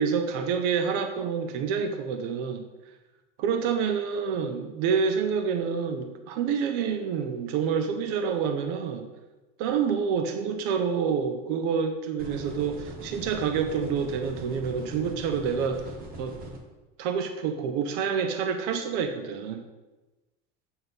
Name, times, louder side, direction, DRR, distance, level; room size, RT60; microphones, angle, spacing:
voice 1, 0.0-2.7 3.4-9.1 9.6-16.4 17.0-19.6, right 6 dB, 65° right, 7 dB, 0.7 m, -28 dB
sound 1, 12.2-16.6, right 1 dB, 30° right, 1.0 m, -41 dB
8.0 x 3.8 x 5.4 m, 1.1 s
cardioid pair, 175°, 30 cm